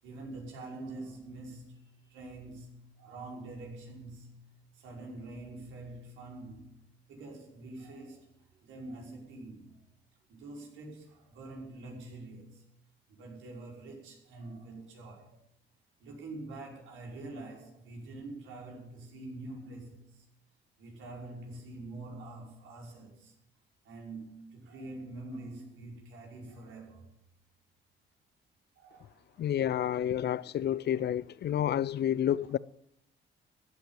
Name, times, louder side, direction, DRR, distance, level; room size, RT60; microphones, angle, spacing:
voice 1, 0.0-4.4 4.7-6.8 7.1-9.7 10.3-12.7 13.1-15.4 16.0-20.3 20.8-23.4 23.8-27.1 28.8-29.8 30.8-31.2 32.4-32.6, right 2 dB, 90° right, 5.6 m, -46 dB
voice 2, 29.4-32.6, left 10 dB, 55° left, 0.6 m, -29 dB
15.0 x 9.0 x 8.8 m
cardioid pair, 90°, 20 cm